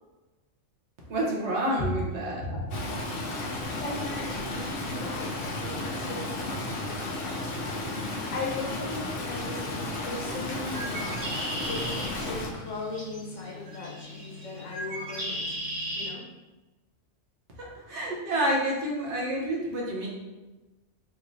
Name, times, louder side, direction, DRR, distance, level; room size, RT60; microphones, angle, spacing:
voice 1, 1.1-2.4 17.6-20.1, right 1 dB, 70° right, -3 dB, 1.1 m, -29 dB
voice 2, 2.3-2.7 3.7-4.4 4.8-6.3 6.9-7.3 7.9-11.1 11.6-15.4 15.9-16.2, left 2 dB, 85° left, -3 dB, 1.2 m, -37 dB
Stream, 2.7-12.5, left 2 dB, 60° left, 0.7 m, -33 dB
Bird, 10.6-16.1, equal, 30° right, 0.9 m, -36 dB
3.4 x 3.1 x 2.5 m, 1.1 s
omnidirectional pair, 1.2 m